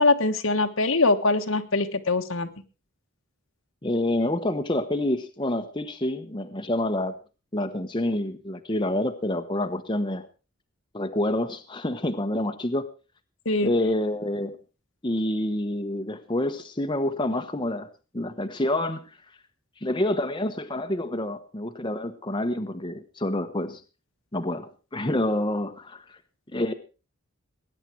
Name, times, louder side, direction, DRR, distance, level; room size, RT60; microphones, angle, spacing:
voice 1, 0.0-2.5 13.4-13.7, left 3 dB, 70° left, 7 dB, 1.5 m, -22 dB
voice 2, 3.8-7.1 7.5-10.2 10.9-12.8 13.6-14.6 15.0-17.9 18.1-19.0 19.8-23.8 24.3-26.2 26.5-26.7, left 1 dB, 20° left, 6 dB, 1.1 m, -27 dB
20.0 x 10.0 x 4.6 m, 0.34 s
head